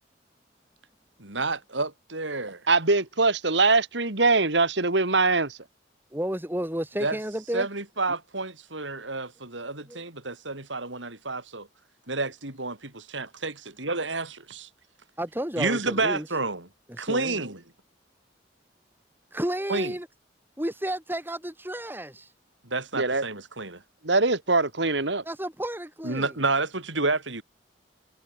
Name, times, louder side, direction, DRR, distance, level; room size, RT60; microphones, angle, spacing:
voice 1, 1.2-2.6 7.0-7.2 7.5-11.7 12.1-14.7 15.6-16.7 17.0-17.6 19.7-19.9 22.6-23.8 26.0-27.4, right 3 dB, 85° right, 6.1 m, -30 dB
voice 2, 2.7-5.6 22.9-23.3 24.1-25.2, right 3 dB, 70° right, 2.5 m, -22 dB
voice 3, 6.1-7.7 9.9-10.0 15.2-16.3 16.9-17.4 19.3-20.1 20.6-22.3 25.2-26.3, right 1 dB, 10° right, 4.1 m, -32 dB
head